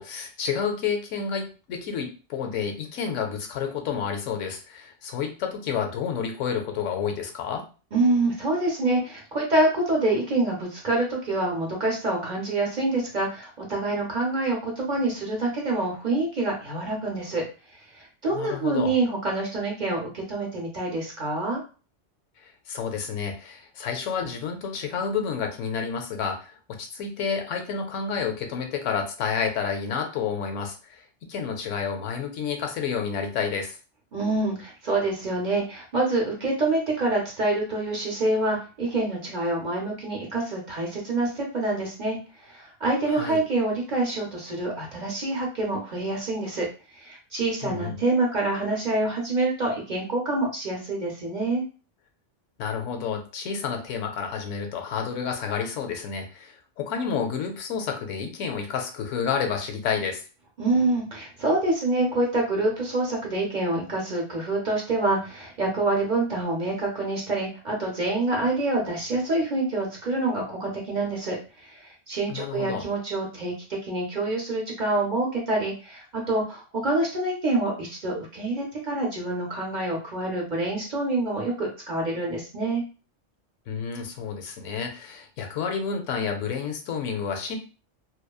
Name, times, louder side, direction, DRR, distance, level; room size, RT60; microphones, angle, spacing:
voice 1, 0.0-7.7 18.3-18.9 22.4-33.8 43.1-43.4 47.6-48.0 52.6-60.2 72.3-72.8 83.7-87.6, left 6 dB, 85° left, 4 dB, 0.9 m, -30 dB
voice 2, 7.9-21.6 34.1-42.2 42.4-46.7 46.9-51.6 60.6-73.5 73.8-82.8, right 2 dB, 45° right, -2 dB, 0.7 m, -26 dB
2.9 x 2.1 x 2.2 m, 0.35 s
omnidirectional pair, 1.3 m